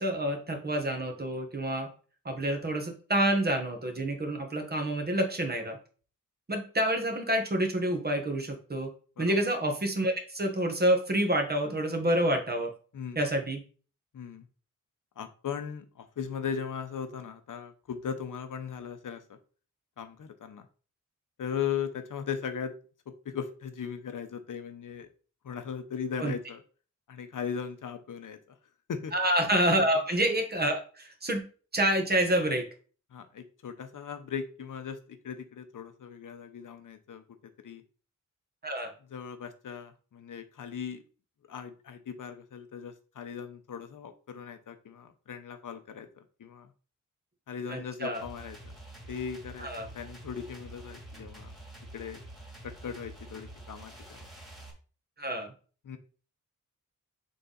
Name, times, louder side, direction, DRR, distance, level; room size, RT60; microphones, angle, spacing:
voice 1, 0.0-1.9 2.2-5.8 6.5-8.9 9.2-12.7 13.1-13.6 26.2-26.3 29.1-31.4 31.7-32.6 38.6-38.9 47.7-48.2 49.6-49.9 55.2-55.5, right 1 dB, 30° right, 4 dB, 1.2 m, -28 dB
voice 2, 14.1-14.5 15.2-19.4 20.0-20.7 21.4-22.7 23.2-25.1 25.4-26.6 27.1-28.4 28.9-29.1 33.1-37.2 37.6-37.8 39.1-41.0 41.5-46.7 47.5-48.7 49.1-49.7 49.9-51.5 51.9-52.2 52.6-54.3 55.8-56.0, left 7 dB, 75° left, 8 dB, 0.9 m, -38 dB
sound 1, 48.1-54.7, right 1 dB, ahead, 2.2 m, -47 dB
6.9 x 4.0 x 4.0 m, 0.39 s
wide cardioid pair, 165°, 31 cm